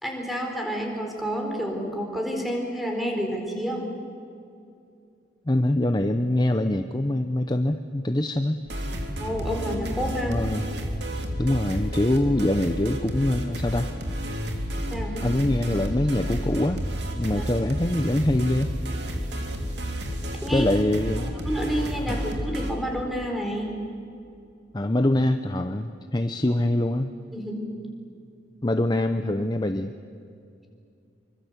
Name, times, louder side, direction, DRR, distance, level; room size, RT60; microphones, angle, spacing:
voice 1, 0.0-3.8 9.2-10.4 14.9-15.2 17.3-17.4 20.4-20.7 21.5-23.7 27.3-27.6, equal, ahead, 1 dB, 4.3 m, -29 dB
voice 2, 5.5-8.6 10.3-10.6 11.4-13.9 15.2-16.8 17.1-18.7 20.5-21.4 22.1-22.2 24.7-27.1 28.6-29.9, left 1 dB, 20° left, 8 dB, 0.7 m, -24 dB
sound 1, 8.7-22.7, equal, 60° right, 3.3 m, -31 dB
26.5 x 24.0 x 8.2 m, 2.5 s
head